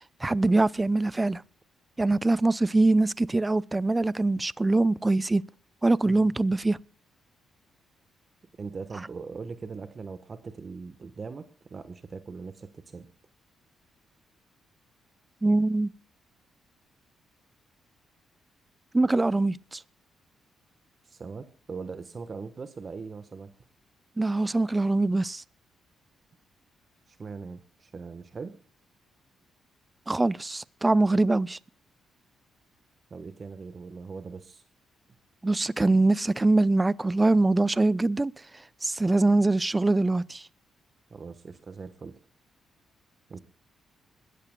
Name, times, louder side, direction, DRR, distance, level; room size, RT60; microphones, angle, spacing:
voice 1, 0.2-1.4 2.0-5.4 5.8-6.8 15.4-15.9 18.9-19.8 24.2-25.4 30.1-31.6 35.4-38.3 38.8-40.5, right 2 dB, 20° right, 0.5 m, -23 dB
voice 2, 6.0-6.3 8.6-13.1 21.0-23.5 27.1-28.6 33.1-34.6 41.1-42.1 43.3-43.4, right 4 dB, 45° right, 1.2 m, -40 dB
22.0 x 13.5 x 2.3 m
supercardioid pair, 55°, 0 cm